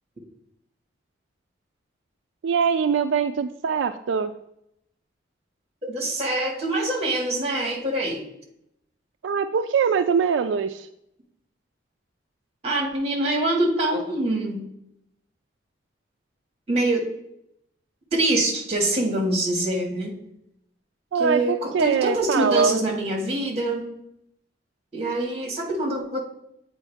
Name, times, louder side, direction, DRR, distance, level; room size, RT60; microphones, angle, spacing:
voice 1, 2.4-4.3 9.2-10.9 21.1-22.8, right 6 dB, 85° right, 8 dB, 0.3 m, -23 dB
voice 2, 5.8-8.3 12.6-14.6 16.7-17.0 18.1-20.1 21.2-23.9 24.9-26.2, right 1 dB, 35° right, 1 dB, 1.8 m, -24 dB
8.2 x 4.6 x 3.4 m, 0.78 s
head